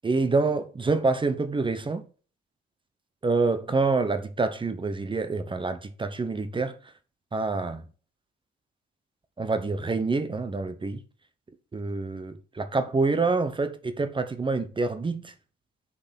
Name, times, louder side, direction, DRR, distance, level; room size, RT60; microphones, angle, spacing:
voice 1, 0.0-2.1 3.2-6.7 7.3-7.8 9.4-11.0 11.7-15.3, right 3 dB, 25° right, 1.0 m, -27 dB
6.5 x 6.2 x 6.1 m
cardioid pair, 90°, 20 cm